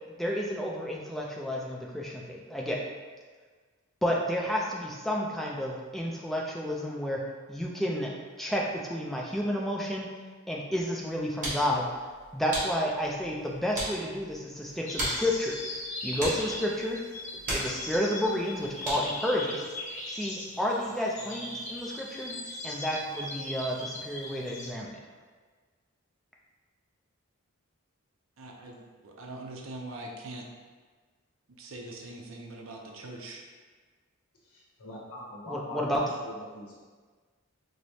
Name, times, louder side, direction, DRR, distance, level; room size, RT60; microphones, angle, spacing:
voice 1, 0.2-2.8 4.0-7.2 7.5-8.1 8.4-10.1 10.5-11.9 12.3-15.5 16.0-17.0 17.5-19.6 20.1-22.4 22.6-25.0 35.5-36.0, equal, ahead, -3 dB, 0.3 m, -31 dB
sound 1, 11.0-19.3, right 1 dB, 35° right, 1.0 m, -38 dB
sound 2, 14.9-24.7, left 1 dB, 35° left, 0.6 m, -39 dB
voice 2, 28.4-30.5 31.6-33.4, right 2 dB, 60° right, 0 dB, 0.5 m, -42 dB
voice 3, 34.4-36.8, left 2 dB, 90° left, -4 dB, 0.7 m, -42 dB
4.6 x 2.0 x 2.7 m, 1.5 s
head